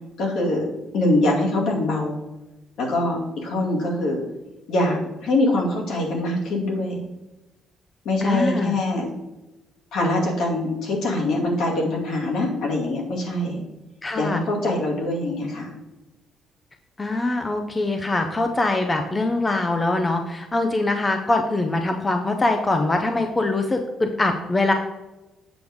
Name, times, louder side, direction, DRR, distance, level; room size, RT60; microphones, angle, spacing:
voice 1, 0.2-0.7 0.9-2.2 2.8-4.2 4.7-7.0 8.0-9.1 9.9-13.6 14.2-15.7, left 1 dB, 65° left, -2 dB, 2.2 m, -23 dB
voice 2, 8.2-8.8 14.0-14.4 17.0-24.7, left 2 dB, 15° left, 5 dB, 0.5 m, -23 dB
7.8 x 6.5 x 3.5 m, 1.0 s
cardioid pair, 170°, 0 cm